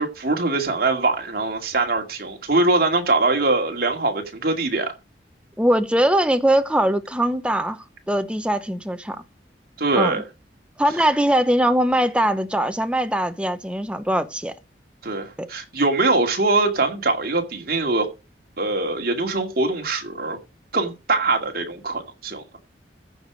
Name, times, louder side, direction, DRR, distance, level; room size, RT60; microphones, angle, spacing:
voice 1, 0.0-4.9 9.8-10.2 15.0-18.1 18.6-20.4 20.7-22.4, right 3 dB, 55° right, 2.3 m, -22 dB
voice 2, 5.6-9.2 10.0-10.2 10.8-14.5 15.4-15.5, right 1 dB, 5° right, 0.8 m, -21 dB
14.5 x 5.0 x 6.3 m
head